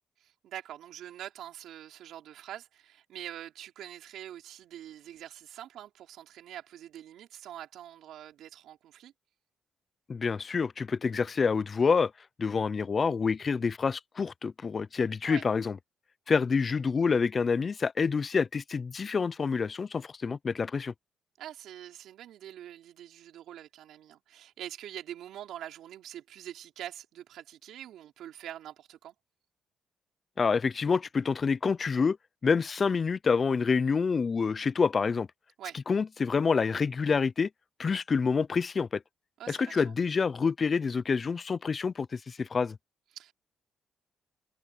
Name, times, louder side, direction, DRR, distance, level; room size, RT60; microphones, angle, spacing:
voice 1, 0.2-9.1 15.2-15.4 21.4-29.1 35.6-35.8 39.4-39.9 43.1-43.3, right 11 dB, 85° right, 4.0 m, -44 dB
voice 2, 10.1-12.1 12.4-15.8 16.3-20.9 30.4-32.2 32.4-35.3 35.9-37.5 37.8-39.0 39.5-42.8, left 5 dB, 35° left, 0.4 m, -27 dB
cardioid pair, 100°, 0 cm